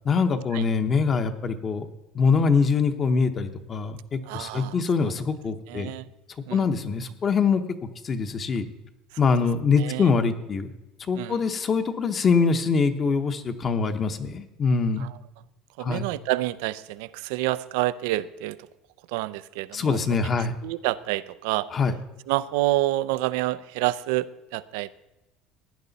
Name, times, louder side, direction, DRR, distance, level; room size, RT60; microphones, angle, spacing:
voice 1, 0.0-1.9 2.1-5.9 6.5-7.6 8.0-8.7 9.2-10.7 11.1-15.0 15.8-16.0 19.7-20.5 21.7-21.9, left 5 dB, 25° left, 8 dB, 0.9 m, -23 dB
voice 2, 4.3-4.8 5.0-5.1 5.7-6.1 6.5-6.7 9.8-10.1 11.1-11.4 15.0-15.2 15.8-18.7 19.1-20.3 20.6-21.8 22.3-24.9, right 17 dB, 85° right, 16 dB, 0.5 m, -28 dB
16.5 x 10.0 x 4.0 m, 0.98 s
cardioid pair, 150°, 0 cm